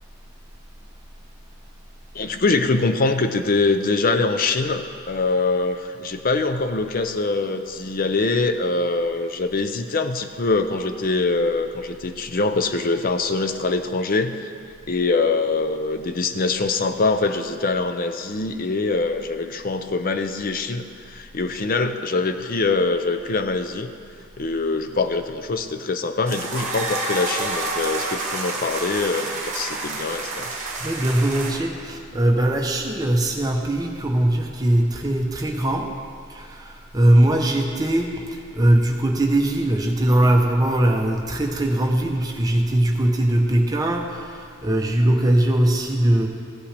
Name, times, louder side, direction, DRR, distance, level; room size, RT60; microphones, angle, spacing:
voice 1, 2.1-14.5 14.9-23.9 24.4-30.5, left 3 dB, 40° left, 8 dB, 0.5 m, -23 dB
sound 1, 26.3-31.5, right 2 dB, 35° right, 1.3 m, -29 dB
voice 2, 30.8-35.9 36.3-46.3, right 1 dB, 15° right, 1 dB, 0.8 m, -20 dB
15.0 x 8.5 x 3.4 m, 2.3 s
head